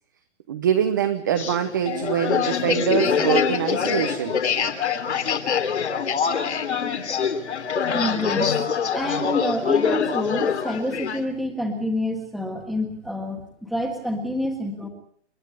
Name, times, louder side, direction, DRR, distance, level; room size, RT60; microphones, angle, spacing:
voice 1, 0.5-4.4, right 9 dB, 15° right, 7 dB, 0.8 m, -24 dB
sound 1, 1.4-11.2, left 6 dB, 70° left, 3.2 m, -24 dB
voice 2, 7.9-14.9, left 1 dB, ahead, 3 dB, 1.5 m, -28 dB
30.0 x 10.5 x 9.3 m, 0.62 s
hypercardioid pair, 175°, 35 cm